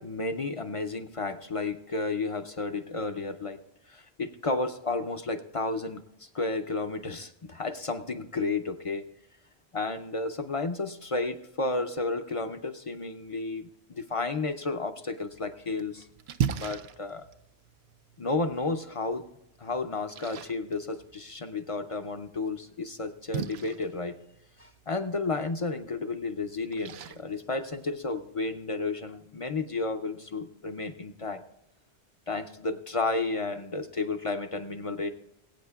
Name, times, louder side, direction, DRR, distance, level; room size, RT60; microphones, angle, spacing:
voice 1, 0.0-3.6 3.9-9.0 9.7-16.1 16.5-17.2 18.2-19.3 19.6-24.2 24.6-31.4 32.3-35.1, left 3 dB, 40° left, 8 dB, 0.5 m, -32 dB
Splash splatter, 15.3-28.3, right 8 dB, 75° right, 0.8 m, -40 dB
21.5 x 8.8 x 2.3 m, 0.80 s
omnidirectional pair, 1.1 m